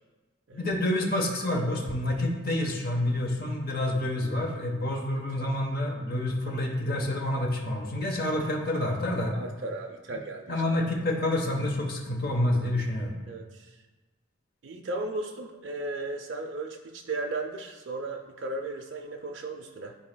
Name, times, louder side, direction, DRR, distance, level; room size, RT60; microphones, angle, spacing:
voice 1, 0.5-9.4 10.5-13.1, left 1 dB, 45° left, 1 dB, 0.9 m, -28 dB
voice 2, 9.3-10.6 13.3-13.8 14.6-20.0, right 2 dB, 60° right, 2 dB, 0.5 m, -36 dB
12.5 x 4.3 x 2.2 m, 1.2 s
head